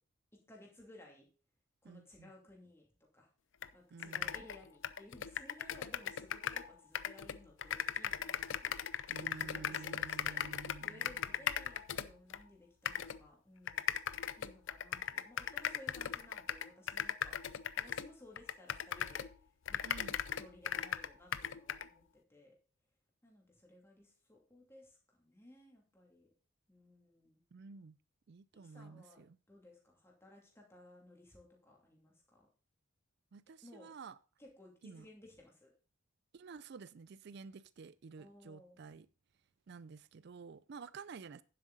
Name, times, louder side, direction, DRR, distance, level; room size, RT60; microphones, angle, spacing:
voice 1, 0.5-1.3 1.8-3.3 3.7-8.9 9.4-10.4 10.8-13.8 14.4-17.4 17.8-19.3 19.7-19.8 20.4-22.5 23.2-26.3 26.7-27.4 28.6-29.2 29.5-32.5 33.6-33.9 34.4-35.7 38.2-38.8, left 1 dB, 10° left, 2.6 m, -58 dB
voice 2, 1.8-2.3 3.9-4.4 9.1-11.5 19.8-20.2 27.5-28.0 28.3-29.4 33.3-34.2 34.8-35.1 36.3-39.1 39.7-41.4, right 5 dB, 50° right, 0.4 m, -51 dB
sound 1, 3.6-3.7 4.0-6.7 6.9-12.4 12.9-13.2 13.7-19.3 19.7-21.9, left 9 dB, 60° left, 0.5 m, -38 dB
10.0 x 7.6 x 4.0 m
head